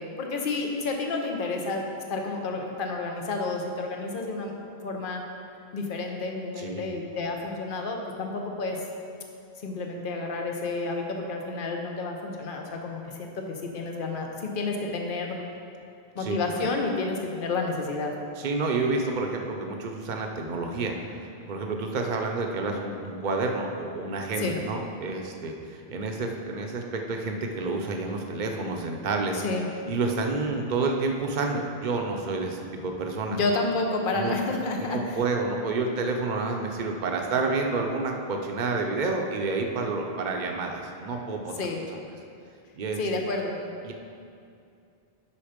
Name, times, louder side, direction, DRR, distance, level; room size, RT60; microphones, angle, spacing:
voice 1, 0.0-1.8 2.1-4.5 4.8-5.2 5.7-8.8 9.6-15.4 16.1-18.1 24.4-24.6 29.3-29.7 33.3-35.2 41.6-41.8 43.0-43.6, left 3 dB, 60° left, 2 dB, 1.0 m, -30 dB
voice 2, 18.4-29.3 29.9-33.4 34.1-34.3 34.8-41.5 42.8-43.0 43.8-43.9, right 3 dB, 50° right, 2 dB, 0.9 m, -29 dB
8.5 x 5.5 x 5.1 m, 2.5 s
omnidirectional pair, 1.0 m